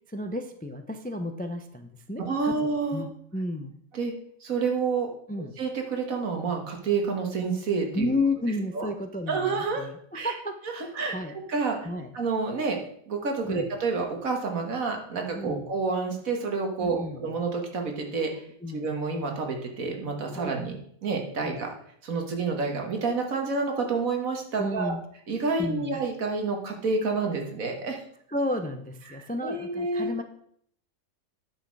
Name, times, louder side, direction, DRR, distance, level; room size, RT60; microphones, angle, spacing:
voice 1, 0.1-2.5 2.9-3.8 5.3-5.5 7.9-11.3 11.8-12.1 13.4-13.7 15.3-15.7 16.8-17.2 18.6-18.9 20.3-20.6 21.4-21.6 24.6-25.0 25.6-26.0 28.3-30.2, left 1 dB, 10° left, 7 dB, 0.4 m, -32 dB
voice 2, 2.2-3.0 3.9-4.1 4.4-5.1 5.6-8.1 8.7-8.9 9.3-9.9 10.1-10.3 10.8-11.1 11.5-11.8 12.1-12.8 13.1-21.7 22.0-24.9 25.3-28.0 29.1-30.1, right 4 dB, 80° right, 3 dB, 2.0 m, -29 dB
9.9 x 6.4 x 4.7 m, 0.65 s
omnidirectional pair, 1.4 m